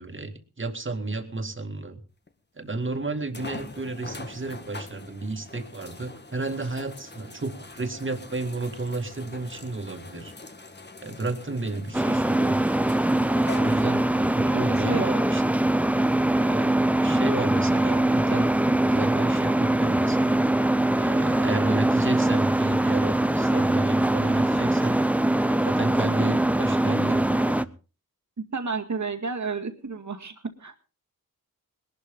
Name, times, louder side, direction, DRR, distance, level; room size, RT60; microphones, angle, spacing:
voice 1, 0.0-2.0 2.6-10.3 11.0-12.6 13.2-15.4 16.4-18.5 18.9-20.4 21.0-25.0 25.5-27.7, right 3 dB, 35° right, 6 dB, 2.1 m, -32 dB
sound 1, 2.3-2.4 3.3-14.4 15.1-15.2 18.6-18.7, left 3 dB, 30° left, 1.5 m, -43 dB
sound 2, 11.9-27.6, right 1 dB, 5° right, 0.6 m, -22 dB
voice 2, 14.7-15.0 26.2-26.3 28.4-30.7, right 4 dB, 50° right, 7 dB, 2.0 m, -31 dB
21.0 x 12.0 x 3.8 m, 0.34 s
wide cardioid pair, 80°, 36 cm